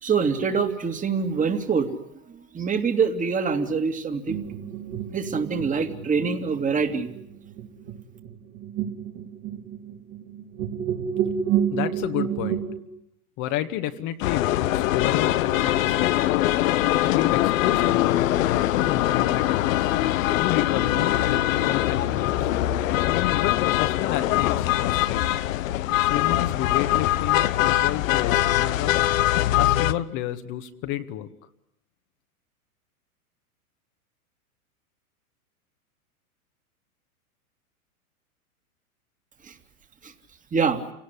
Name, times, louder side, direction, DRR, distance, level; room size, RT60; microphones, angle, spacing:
voice 1, 0.0-4.4 5.1-7.1 39.4-39.6 40.0-40.1 40.5-40.8, right 5 dB, 15° right, 7 dB, 2.6 m, -25 dB
sound 1, 4.3-12.8, right 9 dB, 40° right, 3.2 m, -30 dB
voice 2, 11.7-12.7 13.4-16.3 17.0-19.9 20.4-22.5 23.3-25.4 26.0-29.0 29.5-31.3, left 12 dB, 45° left, 7 dB, 1.8 m, -31 dB
sound 2, 14.2-29.9, left 14 dB, 60° left, 1.2 m, -22 dB
28.5 x 18.0 x 10.0 m, 0.80 s
hypercardioid pair, 110°, 44 cm